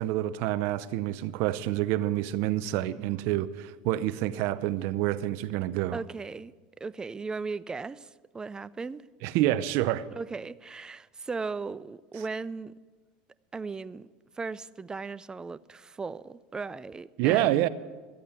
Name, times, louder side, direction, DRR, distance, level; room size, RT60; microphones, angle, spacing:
voice 1, 0.0-6.0 9.2-10.1 17.2-17.7, right 14 dB, 65° right, 0.7 m, -27 dB
voice 2, 5.9-6.5 6.8-9.0 10.1-12.7 13.5-14.1 14.4-17.7, right 4 dB, 15° right, 0.4 m, -37 dB
13.5 x 8.5 x 8.2 m
supercardioid pair, 105°, 5 cm